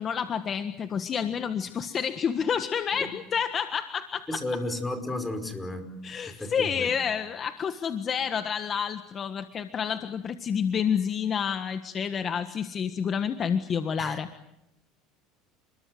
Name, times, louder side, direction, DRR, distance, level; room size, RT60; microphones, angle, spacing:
voice 1, 0.0-4.4 6.0-14.3, left 7 dB, 35° left, 8 dB, 1.5 m, -29 dB
voice 2, 4.3-5.9 6.3-6.9 14.0-14.2, left 1 dB, 10° left, 8 dB, 5.1 m, -33 dB
30.0 x 22.0 x 7.9 m, 0.85 s
supercardioid pair, 115°, 0 cm